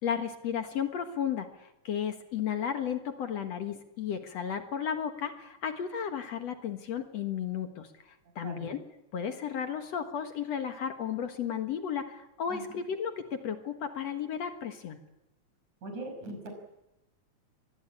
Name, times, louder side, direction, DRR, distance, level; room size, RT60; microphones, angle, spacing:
voice 1, 0.0-7.9 8.4-8.8 9.1-15.0, left 8 dB, 60° left, 7 dB, 2.5 m, -34 dB
voice 2, 8.4-8.7 12.5-12.6 15.8-16.5, right 2 dB, 70° right, 5 dB, 7.2 m, -40 dB
24.0 x 20.0 x 8.6 m, 0.92 s
omnidirectional pair, 3.5 m